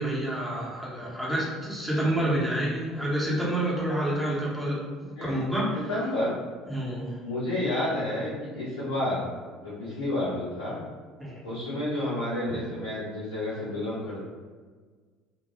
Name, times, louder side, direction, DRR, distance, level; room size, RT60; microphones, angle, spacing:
voice 1, 0.0-5.8 6.7-7.1 11.2-11.4 12.5-12.6, right 1 dB, 10° right, -6 dB, 0.9 m, -28 dB
voice 2, 5.1-5.5 5.9-6.3 7.2-9.2 9.6-10.8 11.4-14.2, left 1 dB, 75° left, -10 dB, 0.6 m, -30 dB
2.2 x 2.1 x 2.9 m, 1.5 s
figure-of-eight pair, 60°, 0 cm